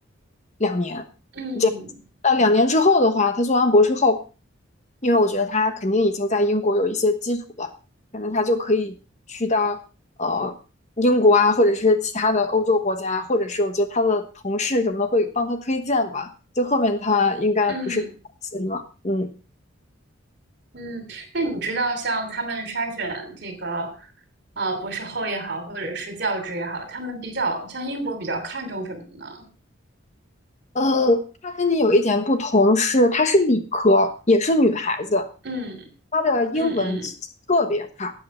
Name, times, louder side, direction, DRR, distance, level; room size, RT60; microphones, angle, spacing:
voice 1, 0.6-1.0 1.6-1.7 2.2-4.2 5.0-7.7 8.1-8.9 9.3-9.8 10.2-10.5 11.0-16.3 16.6-18.0 18.5-19.3 30.7-35.3 36.1-37.0 37.5-38.1, left 2 dB, 35° left, 8 dB, 1.2 m, -20 dB
voice 2, 1.3-1.9 17.7-18.1 20.7-24.1 24.6-29.5 35.4-35.9 36.5-37.1, right 2 dB, 55° right, 7 dB, 3.0 m, -29 dB
12.5 x 8.6 x 4.4 m, 0.33 s
head